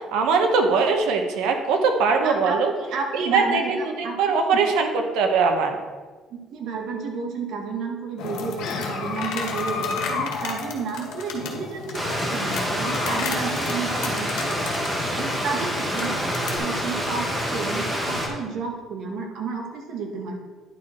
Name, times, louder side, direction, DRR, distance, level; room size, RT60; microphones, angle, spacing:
voice 1, 0.1-2.7 3.1-5.7, right 4 dB, 85° right, 4 dB, 1.1 m, -21 dB
voice 2, 2.2-4.6 6.3-14.8 15.1-20.4, right 4 dB, 55° right, 1 dB, 1.5 m, -32 dB
sound 1, 8.2-16.6, left 4 dB, 90° left, 1.7 m, -32 dB
Stream, 11.9-18.3, equal, 10° right, 1.1 m, -27 dB
10.5 x 4.8 x 4.4 m, 1.4 s
cardioid pair, 180°, 0 cm